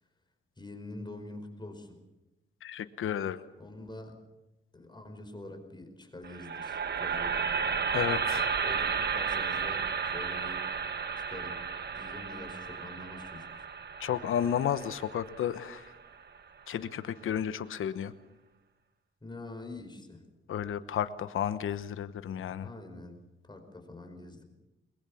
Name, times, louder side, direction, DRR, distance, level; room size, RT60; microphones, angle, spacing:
voice 1, 0.6-2.0 3.6-4.2 4.7-7.4 8.6-10.6 11.1-13.7 19.2-20.2 22.6-24.4, left 2 dB, 20° left, 5 dB, 4.9 m, -45 dB
voice 2, 2.6-3.4 7.9-8.5 14.0-15.9 16.7-18.1 20.5-22.7, left 9 dB, 80° left, 12 dB, 1.1 m, -32 dB
sound 1, 6.2-16.4, right 6 dB, 55° right, 1.5 m, -33 dB
22.0 x 22.0 x 7.2 m, 0.99 s
cardioid pair, 75°, 21 cm